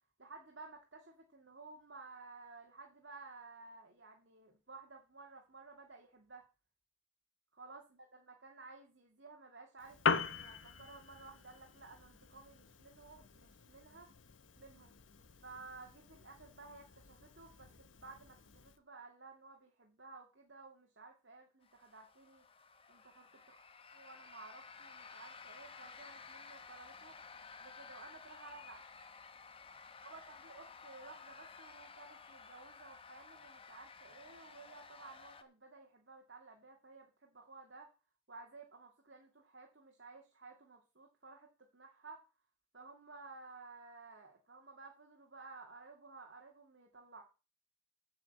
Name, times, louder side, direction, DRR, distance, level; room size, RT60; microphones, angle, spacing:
voice 1, 0.2-6.4 7.5-14.1 14.6-15.0 15.4-22.4 22.9-23.4 24.0-27.2 27.6-28.9 30.0-37.9 38.3-42.2 42.7-47.2, right 3 dB, 65° right, 1 dB, 2.2 m, -55 dB
Piano, 9.8-18.8, left 5 dB, 85° left, 1.0 m, -42 dB
sound 1, 21.6-35.4, left 5 dB, 30° left, 1.1 m, -54 dB
8.9 x 6.0 x 8.4 m, 0.32 s
head